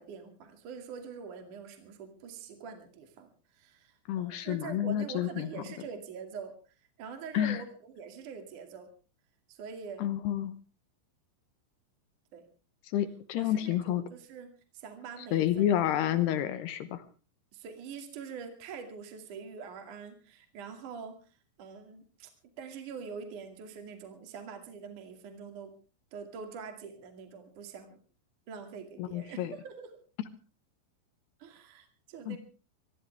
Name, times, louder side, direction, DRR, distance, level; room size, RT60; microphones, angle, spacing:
voice 1, 0.0-6.5 7.0-8.9 9.5-10.1 12.3-12.4 13.3-14.5 14.7-16.3 17.5-21.2 21.6-22.3 22.6-25.7 26.1-28.0 28.5-29.9 31.4-32.4, right 6 dB, 45° right, 6 dB, 3.2 m, -44 dB
voice 2, 4.1-5.5 7.3-7.6 10.0-10.5 12.9-14.1 15.3-17.0 29.0-29.5 32.3-32.4, left 11 dB, 75° left, 12 dB, 2.5 m, -29 dB
24.5 x 16.0 x 3.4 m, 0.35 s
omnidirectional pair, 5.8 m